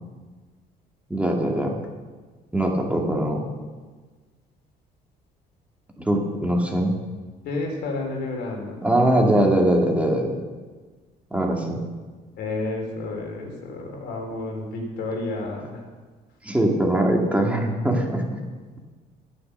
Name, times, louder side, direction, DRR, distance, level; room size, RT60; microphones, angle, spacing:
voice 1, 1.1-1.8 2.5-3.4 6.0-6.9 8.8-10.3 11.3-11.8 16.4-18.4, right 1 dB, 10° right, 0 dB, 2.3 m, -21 dB
voice 2, 7.4-8.9 12.4-15.8, left 2 dB, 75° left, 1 dB, 4.0 m, -31 dB
13.0 x 9.7 x 6.7 m, 1.4 s
cardioid pair, 110°, 17 cm